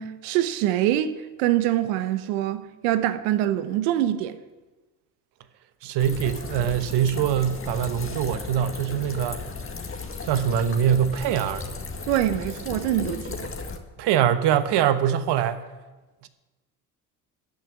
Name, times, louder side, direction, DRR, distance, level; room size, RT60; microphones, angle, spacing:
voice 1, 0.0-4.4 12.1-13.5, right 12 dB, 85° right, 0.9 m, -24 dB
voice 2, 5.8-9.4 10.2-11.7 14.0-15.6 16.2-16.3, right 9 dB, 65° right, 1.2 m, -23 dB
sound 1, 6.0-13.8, left 4 dB, 30° left, 1.8 m, -35 dB
13.5 x 6.1 x 9.7 m
hypercardioid pair, 65°, 44 cm